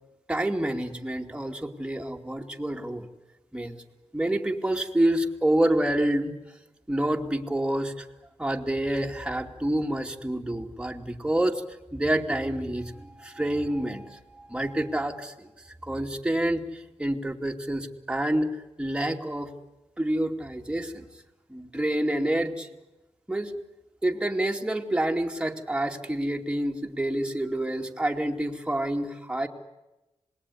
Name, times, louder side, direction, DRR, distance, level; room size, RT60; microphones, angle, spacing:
voice 1, 0.3-3.1 3.5-3.8 4.1-6.3 6.9-8.1 8.4-11.6 11.9-18.5 18.8-19.5 20.0-21.1 21.5-22.7 23.3-23.5 24.0-29.5, right 1 dB, 10° right, 3 dB, 2.6 m, -28 dB
27.0 x 20.5 x 9.8 m, 1.0 s
wide cardioid pair, 90°, 11 cm